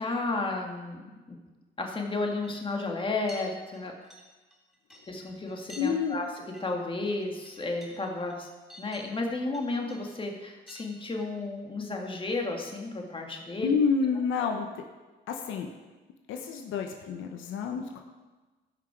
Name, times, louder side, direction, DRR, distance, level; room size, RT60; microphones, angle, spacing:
voice 1, 0.0-1.4 1.8-4.0 5.1-6.3 6.6-8.5 8.8-13.8, left 2 dB, 25° left, 1 dB, 2.0 m, -33 dB
sound 1, 2.4-2.7 3.0-3.4 3.7-5.9 6.1-6.2 6.5-6.7 7.0-9.2 9.5-10.1 10.7-10.9 11.2-11.5, equal, ahead, 3.4 m, -51 dB
voice 2, 5.8-6.2 13.6-14.8 15.3-15.7 16.3-18.0, left 5 dB, 85° left, 3 dB, 1.1 m, -29 dB
15.0 x 6.0 x 4.8 m, 1.2 s
cardioid pair, 90°, 20 cm